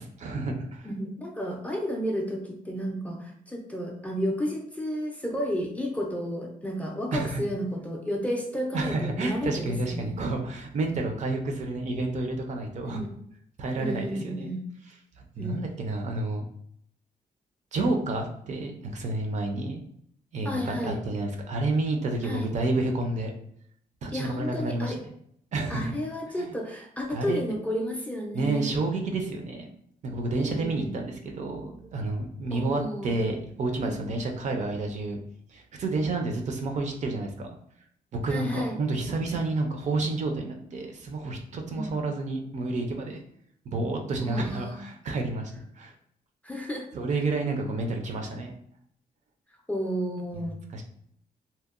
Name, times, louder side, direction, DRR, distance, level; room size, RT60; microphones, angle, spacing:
voice 1, 0.0-0.9 7.1-7.4 8.7-13.0 13.6-14.5 15.4-16.4 17.7-19.8 20.3-23.3 24.0-24.9 25.5-25.9 26.5-26.6 27.1-27.4 28.3-29.7 30.0-35.2 35.5-37.5 38.1-43.2 43.7-45.5 45.8-45.9 46.9-48.5 50.7-50.8, right 2 dB, 50° right, 3 dB, 0.4 m, -30 dB
voice 2, 0.8-10.2 12.8-13.1 13.8-14.6 15.4-15.6 20.4-21.0 22.2-22.5 24.1-25.0 25.7-28.7 30.4-31.0 32.5-33.1 38.3-38.8 41.7-42.0 44.2-44.8 46.4-46.9 49.7-50.6, equal, 10° left, 0 dB, 0.4 m, -32 dB
2.7 x 2.0 x 2.4 m, 0.68 s
wide cardioid pair, 140°, 15 cm